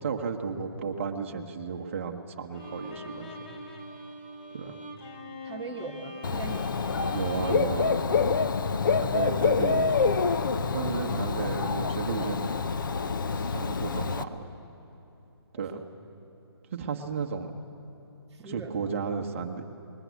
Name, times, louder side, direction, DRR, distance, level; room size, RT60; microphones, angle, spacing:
voice 1, 0.0-3.4 4.5-4.8 7.1-8.0 9.0-9.9 10.7-12.5 13.3-14.5 15.5-15.8 16.7-17.5 18.4-19.7, right 5 dB, 30° right, 4 dB, 1.2 m, -33 dB
Bowed string instrument, 2.5-8.8, left 1 dB, 25° left, 1.3 m, -44 dB
voice 2, 5.4-6.7 15.6-15.8 18.3-19.0, right 5 dB, 5° right, -6 dB, 0.6 m, -40 dB
Dog / Bird, 6.2-14.2, left 5 dB, 50° left, 0.7 m, -27 dB
20.5 x 20.0 x 8.3 m, 2.9 s
hypercardioid pair, 165°, 14 cm